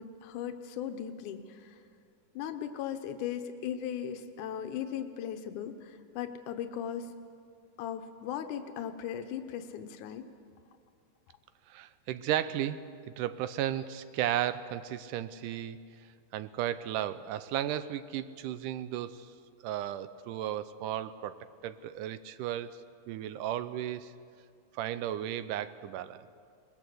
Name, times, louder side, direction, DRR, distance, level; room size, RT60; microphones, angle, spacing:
voice 1, 0.0-1.8 2.4-7.1 7.8-10.2, left 9 dB, 80° left, 7 dB, 2.4 m, -38 dB
voice 2, 11.7-12.8 13.2-15.9 16.3-19.3 19.6-21.4 21.6-22.8 23.1-24.1 24.7-26.3, right 11 dB, 85° right, 13 dB, 2.3 m, -34 dB
21.5 x 21.0 x 7.8 m, 2.3 s
omnidirectional pair, 3.6 m